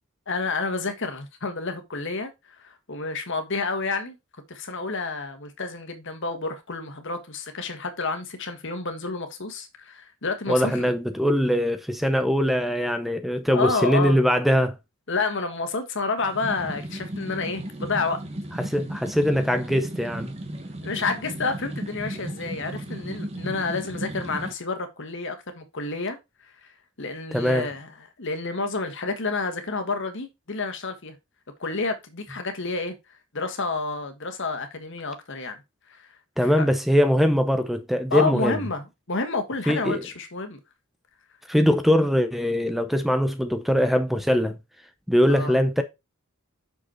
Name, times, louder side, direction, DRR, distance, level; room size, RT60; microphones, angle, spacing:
voice 1, 0.3-2.3 2.6-4.2 4.5-10.9 13.5-14.2 15.1-18.2 20.8-26.2 27.0-27.9 28.2-31.1 31.6-33.0 33.3-35.6 35.9-36.0 36.4-36.7 38.1-40.6 45.3-45.6, left 3 dB, 60° left, 1.5 m, -29 dB
voice 2, 10.5-14.8 18.6-20.3 27.3-27.7 36.4-38.6 39.7-40.0 41.5-44.6 45.1-45.8, equal, ahead, 0.6 m, -22 dB
sound 1, 16.2-24.5, right 1 dB, 30° right, 1.5 m, -35 dB
6.4 x 5.3 x 4.3 m
head